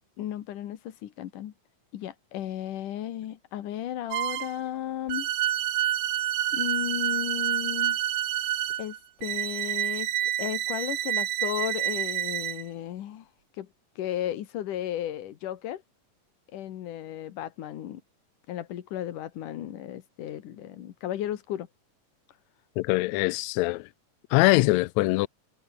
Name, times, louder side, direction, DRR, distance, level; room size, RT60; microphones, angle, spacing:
voice 1, 0.2-1.5 1.9-5.3 6.5-8.0 8.8-10.1 10.4-13.3 13.6-13.7 14.0-15.8 16.5-18.0 18.5-21.7, left 11 dB, 70° left, 3.0 m, -34 dB
sound 1, 4.1-4.6 5.1-12.6, right 12 dB, 85° right, 3.2 m, -28 dB
voice 2, 22.8-23.8 24.3-25.3, left 21 dB, 90° left, 1.6 m, -22 dB
omnidirectional pair, 3.8 m